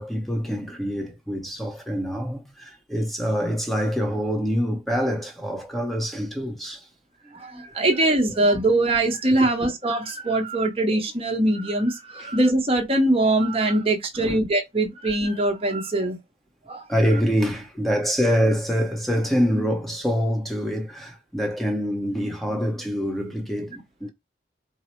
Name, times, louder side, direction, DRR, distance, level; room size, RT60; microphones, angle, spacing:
voice 1, 0.0-6.9 7.2-7.9 9.4-9.5 12.2-12.3 14.1-14.4 16.9-24.1, equal, ahead, 0.8 m, -25 dB
voice 2, 7.3-16.2 16.7-16.8, right 2 dB, 30° right, 1.0 m, -22 dB
4.6 x 2.0 x 4.3 m
head